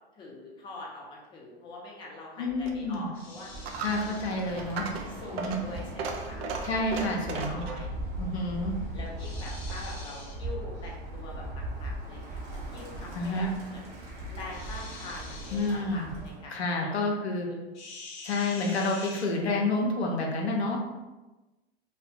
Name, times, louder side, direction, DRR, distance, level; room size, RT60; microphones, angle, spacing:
voice 1, 0.2-3.5 4.0-4.2 5.2-6.5 6.9-8.2 8.9-14.0 14.3-16.9 17.5-17.6, left 2 dB, 15° left, -3 dB, 0.5 m, -44 dB
voice 2, 2.4-3.1 3.8-4.9 5.3-5.6 6.6-7.7 8.2-8.7 13.1-13.5 15.5-16.1 16.5-17.5 18.2-20.8, left 2 dB, 90° left, 0 dB, 0.6 m, -29 dB
Coin (dropping), 2.5-10.0, right 4 dB, 75° right, 0.5 m, -39 dB
sound 1, 3.1-4.3 9.2-10.4 14.5-15.8 17.7-19.3, left 3 dB, 50° left, 0.8 m, -45 dB
Bird, 3.4-16.5, right 1 dB, 30° right, 0.7 m, -39 dB
2.3 x 2.2 x 2.6 m, 1.1 s
hypercardioid pair, 100°, 32 cm